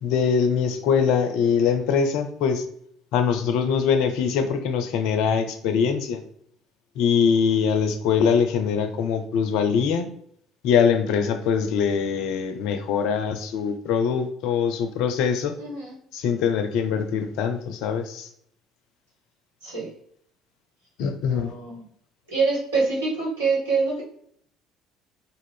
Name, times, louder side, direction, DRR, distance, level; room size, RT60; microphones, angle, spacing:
voice 1, 0.0-2.6 3.1-6.2 7.0-10.1 10.6-15.5 16.1-18.3 21.0-21.5, left 6 dB, 65° left, 7 dB, 0.4 m, -23 dB
voice 2, 15.6-15.9 19.6-19.9 21.3-21.8 22.3-24.0, right 4 dB, 80° right, -7 dB, 1.3 m, -25 dB
2.5 x 2.4 x 3.2 m, 0.66 s
figure-of-eight pair, 55°, 0 cm